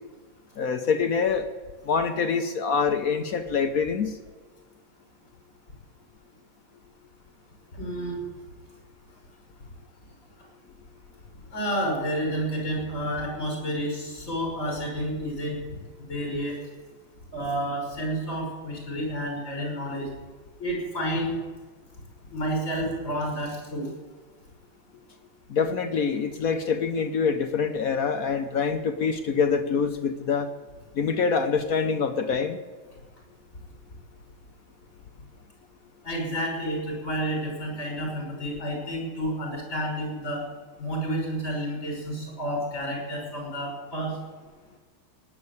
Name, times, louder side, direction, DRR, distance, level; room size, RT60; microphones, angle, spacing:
voice 1, 0.6-1.5 1.8-4.2 25.5-30.5 30.9-32.6, left 5 dB, 60° left, 8 dB, 1.0 m, -25 dB
voice 2, 7.7-8.2 11.5-15.6 16.1-16.6 17.3-20.1 20.6-21.3 22.3-23.9 36.0-40.4 40.8-44.2, equal, 40° left, -1 dB, 5.9 m, -30 dB
18.5 x 7.7 x 9.6 m, 1.4 s
omnidirectional pair, 2.3 m